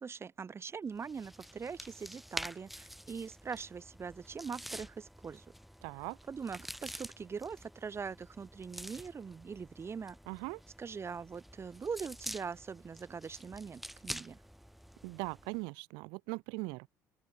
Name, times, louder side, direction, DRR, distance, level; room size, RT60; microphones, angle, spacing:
voice 1, 0.0-5.4 6.3-10.2 10.8-14.4, right 6 dB, 35° right, 1.5 m, -42 dB
sound 1, 0.9-15.6, equal, ahead, 1.9 m, -48 dB
voice 2, 5.8-6.2 10.3-10.6 15.0-16.9, right 28 dB, 85° right, 0.5 m, -40 dB
open air
supercardioid pair, 80°, 8 cm